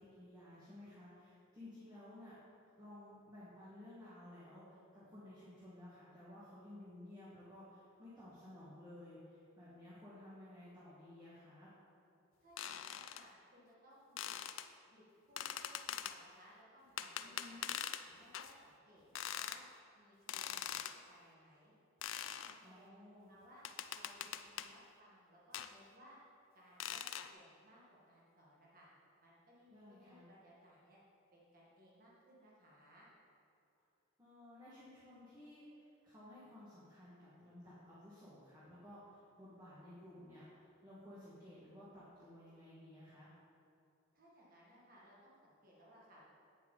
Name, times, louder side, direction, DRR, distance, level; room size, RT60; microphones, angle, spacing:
voice 1, 0.0-2.3 2.8-11.7 17.2-17.7 22.6-23.3 29.7-30.2 34.2-43.3, left 1 dB, 15° right, -11 dB, 1.5 m, -55 dB
voice 2, 12.4-14.3 14.9-17.7 18.0-19.6 19.9-20.7 20.9-21.7 22.1-22.9 23.3-23.6 23.9-26.2 26.5-28.9 29.2-31.0 31.3-33.1 44.1-46.3, equal, 45° right, -5 dB, 1.4 m, -63 dB
sound 1, 12.6-13.2 14.2-14.7 15.4-16.2 17.0-18.0 18.3-18.5 19.1-19.6 20.3-21.0 22.0-22.5 23.6-24.7 25.5-25.7 26.8-27.3, left 10 dB, 65° left, 0.4 m, -43 dB
9.1 x 7.2 x 3.9 m, 2.6 s
head